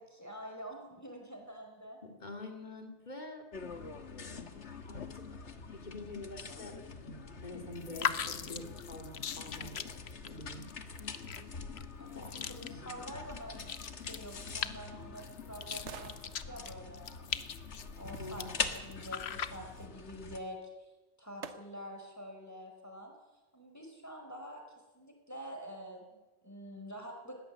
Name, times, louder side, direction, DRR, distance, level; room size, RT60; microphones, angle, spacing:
voice 1, 0.0-2.0 12.0-17.3 18.0-20.9 21.2-23.1 23.5-24.6 24.9-27.4, equal, 15° left, 1 dB, 4.8 m, -47 dB
voice 2, 2.0-3.4 4.2-4.5 4.9-10.0 10.2-10.7 12.1-13.0 18.2-18.5, left 2 dB, 40° left, 3 dB, 2.9 m, -47 dB
sound 1, 3.5-20.4, left 4 dB, 90° left, 1.8 m, -44 dB
sound 2, 7.7-19.9, left 7 dB, 70° left, 1.2 m, -42 dB
sound 3, 21.4-22.1 22.6-22.7, right 6 dB, 90° right, 1.4 m, -52 dB
20.5 x 17.0 x 8.4 m, 1.1 s
omnidirectional pair, 1.1 m